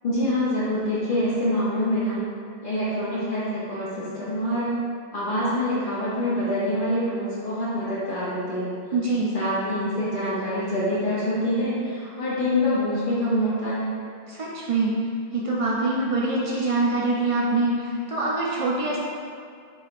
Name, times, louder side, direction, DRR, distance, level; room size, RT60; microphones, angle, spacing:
voice 1, 0.0-2.2 2.6-4.7 5.1-8.7 9.3-13.9, left 1 dB, 55° left, -9 dB, 0.8 m, -25 dB
voice 2, 8.9-9.3 14.3-14.9 15.3-19.0, right 2 dB, 60° right, -5 dB, 0.3 m, -24 dB
3.9 x 3.1 x 2.4 m, 2.3 s
omnidirectional pair, 1.0 m